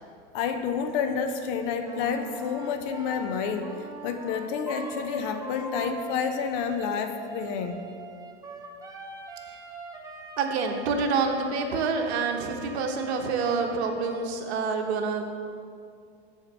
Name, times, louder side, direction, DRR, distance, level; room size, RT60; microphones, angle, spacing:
voice 1, 0.3-3.7 4.0-7.8, left 6 dB, 50° left, 7 dB, 0.8 m, -29 dB
Wind instrument woodwind instrument, 1.8-14.3, right 2 dB, 10° right, 0.9 m, -42 dB
voice 2, 10.4-15.3, right 4 dB, 65° right, 4 dB, 1.1 m, -27 dB
7.0 x 4.6 x 6.8 m, 2.3 s
hypercardioid pair, 120°, 35 cm